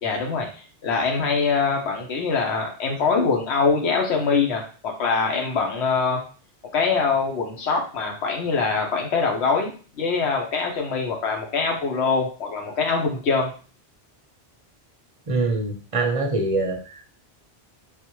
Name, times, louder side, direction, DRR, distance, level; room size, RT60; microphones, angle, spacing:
voice 1, 0.0-6.2 6.7-13.5, left 4 dB, 75° left, 2 dB, 1.0 m, -23 dB
voice 2, 15.3-17.1, right 3 dB, 40° right, 2 dB, 0.5 m, -24 dB
3.4 x 2.5 x 2.9 m, 0.38 s
omnidirectional pair, 1.1 m